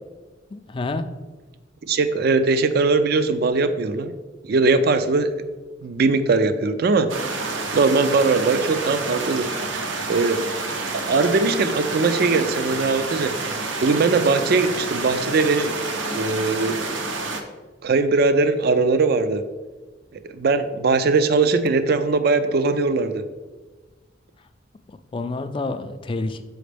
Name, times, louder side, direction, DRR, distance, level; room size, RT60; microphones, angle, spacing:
voice 1, 0.5-1.1 25.1-26.4, left 3 dB, 25° left, 9 dB, 0.3 m, -28 dB
voice 2, 1.9-4.1 4.4-5.3 5.8-7.1 7.7-9.5 10.1-10.4 11.1-13.3 13.8-15.7 16.1-16.8 17.8-19.4 20.1-23.2, right 3 dB, 50° right, 11 dB, 0.4 m, -20 dB
sound 1, 7.1-17.4, right 3 dB, 80° right, 0.7 m, -28 dB
6.3 x 4.9 x 3.4 m, 1.3 s
head